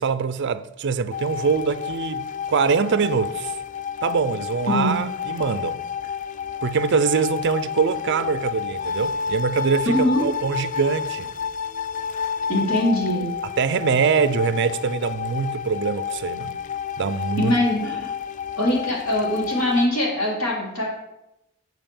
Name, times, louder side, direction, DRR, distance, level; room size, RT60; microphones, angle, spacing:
voice 1, 0.0-3.6 4.0-5.8 6.6-11.3 13.6-16.6 17.0-17.5, right 5 dB, 55° right, 0.5 m, -23 dB
sound 1, 1.1-19.9, left 7 dB, 40° left, 0.3 m, -30 dB
voice 2, 9.8-10.2 12.5-13.3 17.4-18.1 18.6-20.8, left 1 dB, 85° left, 3.4 m, -22 dB
7.4 x 5.6 x 7.1 m
head